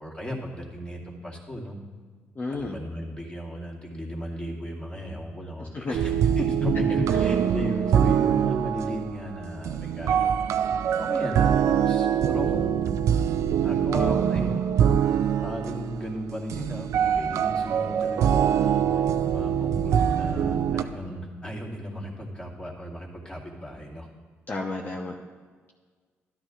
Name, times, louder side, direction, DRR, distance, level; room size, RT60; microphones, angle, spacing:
voice 1, 0.0-1.8 2.5-10.4 11.0-12.9 13.6-14.6 15.4-19.0 19.3-24.1, equal, 20° left, -4 dB, 2.4 m, -35 dB
voice 2, 2.4-2.8 5.6-6.0 24.5-25.1, left 3 dB, 40° left, -1 dB, 1.0 m, -32 dB
sound 1, 5.9-20.8, right 8 dB, 75° right, 0.5 m, -24 dB
13.0 x 12.0 x 2.5 m, 1.5 s
cardioid pair, 70°, 5 cm